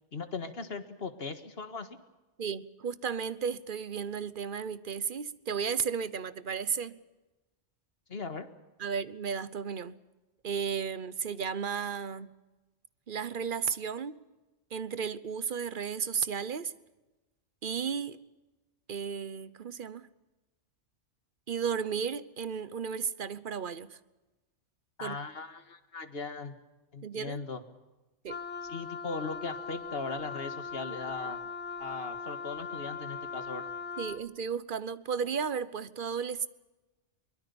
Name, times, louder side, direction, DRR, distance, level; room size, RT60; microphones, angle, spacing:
voice 1, 0.1-2.0 8.1-8.5 25.0-26.6 26.9-27.6 28.6-31.4 31.8-33.7, left 4 dB, 55° left, 1.9 m, -38 dB
voice 2, 2.4-7.0 8.8-10.0 10.4-12.3 13.1-14.2 14.7-16.7 17.6-18.2 18.9-20.1 21.5-24.0 25.0-25.2 27.0-27.4 28.2-28.4 34.0-36.5, right 6 dB, 50° right, 1.0 m, -34 dB
Wind instrument woodwind instrument, 28.3-34.3, left 5 dB, 75° left, 1.5 m, -40 dB
23.0 x 21.5 x 7.1 m
omnidirectional pair, 1.2 m